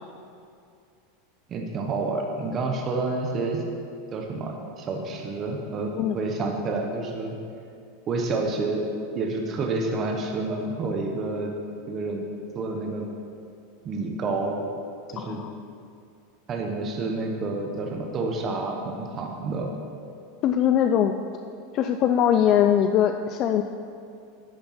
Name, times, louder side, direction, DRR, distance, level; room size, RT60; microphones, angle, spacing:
voice 1, 1.5-3.6 4.1-7.4 8.1-8.9 9.1-11.5 11.9-12.2 12.5-13.1 13.8-14.6 15.1-15.4 16.5-19.7, right 3 dB, 25° right, 1 dB, 1.0 m, -29 dB
voice 2, 15.2-15.5 20.4-21.1 21.7-23.6, left 9 dB, 35° left, 7 dB, 0.4 m, -21 dB
10.5 x 6.5 x 5.8 m, 2.4 s
supercardioid pair, 155°, 0 cm